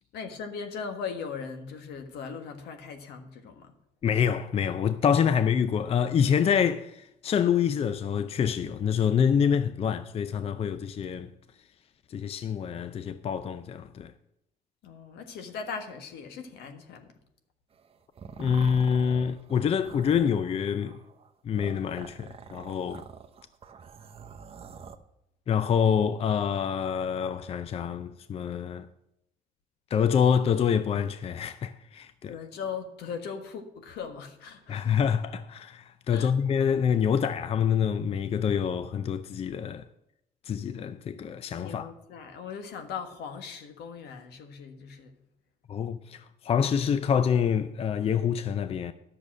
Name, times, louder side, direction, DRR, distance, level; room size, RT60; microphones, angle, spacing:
voice 1, 0.1-3.7 14.8-17.1 32.3-35.0 36.1-36.3 41.6-45.1, left 6 dB, 75° left, 1.5 m, -39 dB
voice 2, 4.0-11.3 12.1-14.1 18.4-20.9 21.4-23.0 25.5-28.9 29.9-32.3 34.7-39.8 40.5-41.9 45.7-48.9, left 7 dB, 35° left, 0.5 m, -26 dB
sound 1, 17.7-25.0, right 6 dB, 35° right, 0.8 m, -46 dB
10.5 x 6.8 x 6.2 m
cardioid pair, 110°, 17 cm